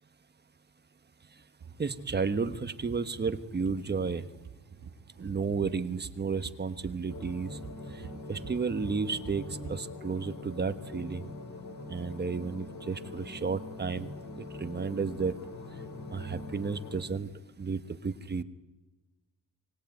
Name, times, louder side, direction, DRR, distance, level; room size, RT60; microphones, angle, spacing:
sound 1, 1.6-9.7, right 6 dB, 60° right, 3.5 m, -48 dB
voice 1, 1.8-4.2 5.2-7.6 7.9-8.0 8.3-9.4 9.7-11.3 11.9-14.1 14.4-15.3 16.1-17.3 17.6-18.4, right 5 dB, 30° right, 10 dB, 1.3 m, -32 dB
sound 2, 7.1-17.0, left 2 dB, 60° left, 3.6 m, -43 dB
24.5 x 20.0 x 9.3 m, 1.1 s
wide cardioid pair, 175°, 33 cm